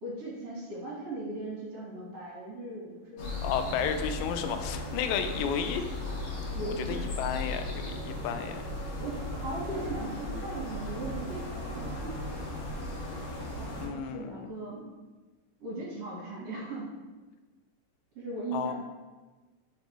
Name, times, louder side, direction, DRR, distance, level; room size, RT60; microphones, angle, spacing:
voice 1, 0.0-3.8 5.1-5.3 6.5-7.1 9.0-11.4 11.7-12.6 13.6-14.8 15.6-16.9 18.2-18.7, right 2 dB, 55° right, -6 dB, 2.2 m, -38 dB
sound 1, 3.2-13.9, left 1 dB, 60° left, 2.1 m, -36 dB
voice 2, 3.4-5.8 6.6-8.6 13.8-14.5 18.5-18.7, left 7 dB, 90° left, 8 dB, 2.2 m, -32 dB
5.2 x 4.2 x 4.5 m, 1.3 s
omnidirectional pair, 3.8 m